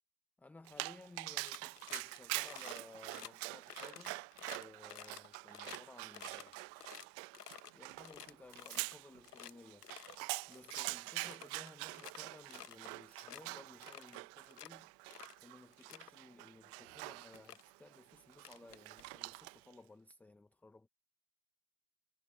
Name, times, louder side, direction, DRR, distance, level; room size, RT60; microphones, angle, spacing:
voice 1, 0.4-6.6 7.7-9.9 10.5-14.9 15.4-20.9, left 2 dB, 5° left, 1.0 m, -58 dB
Dog, 0.7-19.7, right 25 dB, 30° right, 0.9 m, -45 dB
sound 1, 1.4-2.2 2.4-2.8 3.1-3.3 3.7-5.8 6.1-7.7 8.0-8.9 9.2-9.5 9.8-10.2 10.5-10.8 11.2-12.2 12.5-12.9 13.2-13.4 13.8-14.7 15.1-15.4 15.7-16.1 16.9-17.0 17.3-17.6 18.3-19.3, left 10 dB, 85° left, 1.2 m, -51 dB
hypercardioid pair, 120°, 46 cm